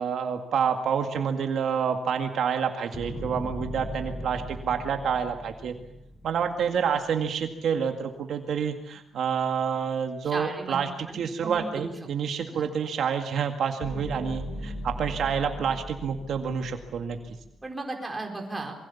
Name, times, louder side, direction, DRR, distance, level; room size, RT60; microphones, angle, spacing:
voice 1, 0.0-5.7 6.2-17.2, right 7 dB, 60° right, 5 dB, 2.0 m, -28 dB
sound 1, 2.9-7.2 13.8-17.6, equal, 25° left, 6.8 m, -38 dB
voice 2, 10.2-11.9 12.4-12.6 17.6-18.7, right 2 dB, 10° right, 2 dB, 4.4 m, -36 dB
27.5 x 23.0 x 7.2 m, 0.79 s
wide cardioid pair, 175°, 0 cm